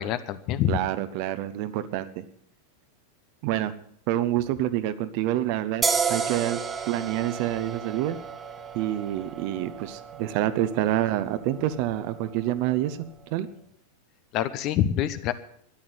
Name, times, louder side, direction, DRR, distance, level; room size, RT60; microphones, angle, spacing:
voice 1, 0.0-0.8 14.3-15.3, left 11 dB, 40° left, 13 dB, 1.0 m, -26 dB
voice 2, 0.7-2.2 3.4-3.7 4.1-5.8 6.1-6.6 6.9-8.2 8.7-13.0 13.3-13.5, right 13 dB, 45° right, 12 dB, 1.0 m, -27 dB
sound 1, 5.8-13.1, right 6 dB, 15° right, 1.2 m, -33 dB
13.0 x 10.5 x 7.9 m, 0.65 s
figure-of-eight pair, 90°, 0 cm